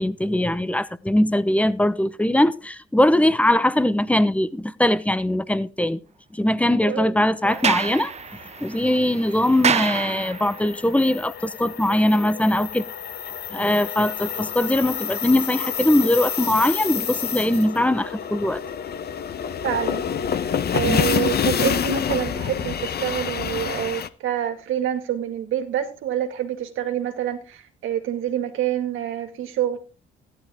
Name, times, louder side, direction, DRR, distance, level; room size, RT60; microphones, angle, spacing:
voice 1, 0.0-6.0 6.3-8.1 8.6-12.8 13.5-18.6 20.9-21.0, left 1 dB, 5° left, 0.9 m, -21 dB
Sliding door, 7.4-10.7, right 7 dB, 35° right, 0.6 m, -27 dB
sound 1, 7.6-24.1, left 8 dB, 55° left, 1.0 m, -28 dB
voice 2, 19.6-20.0 20.7-29.8, right 10 dB, 85° right, 2.3 m, -26 dB
14.5 x 11.5 x 3.6 m
cardioid pair, 90°, 20 cm